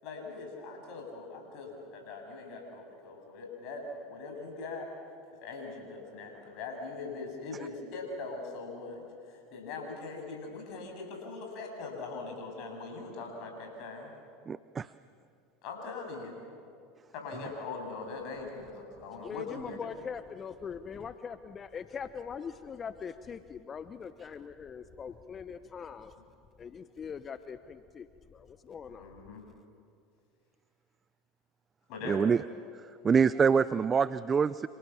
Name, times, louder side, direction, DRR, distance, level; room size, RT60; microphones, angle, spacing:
voice 1, 0.0-4.9 5.4-14.1 15.6-16.5 17.1-19.8 28.9-29.4 31.9-32.2, left 3 dB, 55° left, 2 dB, 7.9 m, -41 dB
voice 2, 14.5-14.9 32.1-32.4 33.0-34.7, right 6 dB, 25° right, 16 dB, 0.6 m, -25 dB
voice 3, 19.2-26.1 26.6-29.1, left 6 dB, 30° left, 12 dB, 0.9 m, -42 dB
29.0 x 28.0 x 7.2 m, 2.4 s
hypercardioid pair, 80°, 0 cm